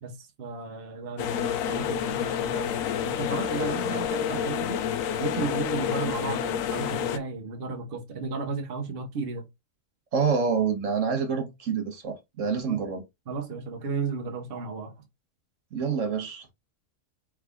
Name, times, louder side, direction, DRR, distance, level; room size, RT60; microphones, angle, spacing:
voice 1, 0.0-2.8 3.0-4.8 5.2-9.4 12.7-12.8 13.3-14.9, right 4 dB, 50° right, 1.1 m, -34 dB
sound 1, 1.2-7.2, left 9 dB, 85° left, 1.0 m, -29 dB
voice 2, 10.1-13.0 15.7-16.5, right 6 dB, 70° right, 1.4 m, -27 dB
4.7 x 3.6 x 2.3 m
omnidirectional pair, 1.4 m